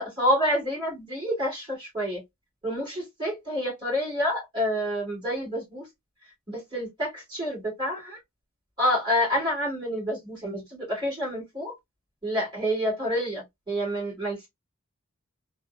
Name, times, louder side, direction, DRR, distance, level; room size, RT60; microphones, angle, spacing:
voice 1, 0.0-2.2 2.6-5.8 6.5-8.2 8.8-11.7 12.2-14.5, equal, 20° right, 2.0 m, -28 dB
3.4 x 2.0 x 2.3 m
head